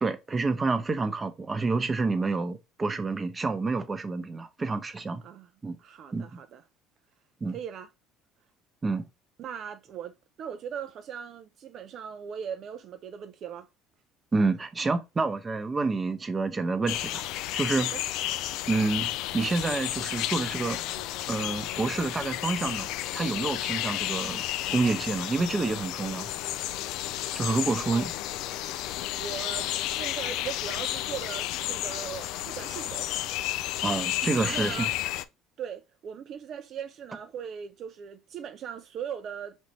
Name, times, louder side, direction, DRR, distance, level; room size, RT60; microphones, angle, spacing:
voice 1, 0.0-5.2 5.6-5.8 6.1-6.3 7.4-7.6 8.8-9.0 14.3-17.9 18.7-20.8 21.3-22.9 23.1-24.4 24.7-26.3 27.3-28.1 33.8-34.9, right 3 dB, 25° right, 0.8 m, -28 dB
voice 2, 5.8-6.6 7.5-7.9 9.4-13.7 17.8-18.0 27.9-28.1 29.2-33.1 34.4-34.9 35.6-39.6, right 8 dB, 55° right, 0.4 m, -39 dB
sound 1, 16.9-35.2, left 14 dB, 70° left, 0.3 m, -32 dB
5.3 x 2.6 x 3.0 m
hypercardioid pair, 75°, 0 cm